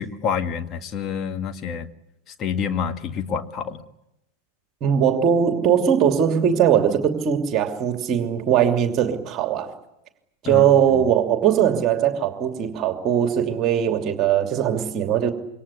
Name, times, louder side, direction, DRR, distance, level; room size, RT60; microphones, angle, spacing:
voice 1, 0.0-1.9 2.4-3.8 10.4-11.0, left 6 dB, 30° left, 7 dB, 1.9 m, -28 dB
voice 2, 4.8-9.7 10.4-15.3, right 9 dB, 35° right, 5 dB, 2.9 m, -20 dB
27.0 x 24.0 x 8.4 m, 0.88 s
figure-of-eight pair, 90°, 0 cm